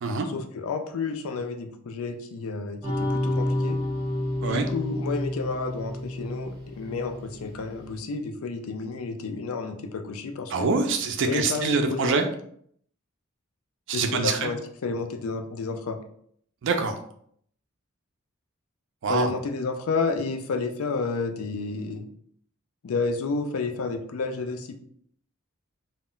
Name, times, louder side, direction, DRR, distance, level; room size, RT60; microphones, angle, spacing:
voice 1, 0.3-3.8 4.4-10.7 11.3-12.1 13.9-16.0 19.1-22.1 22.8-24.8, left 4 dB, 75° left, 6 dB, 0.4 m, -30 dB
sound 1, 2.8-7.6, left 1 dB, 15° right, 0.7 m, -29 dB
voice 2, 10.5-12.3 13.9-14.5 16.6-17.0 19.0-19.3, right 4 dB, 60° right, 5 dB, 0.4 m, -25 dB
2.1 x 2.1 x 3.7 m, 0.64 s
head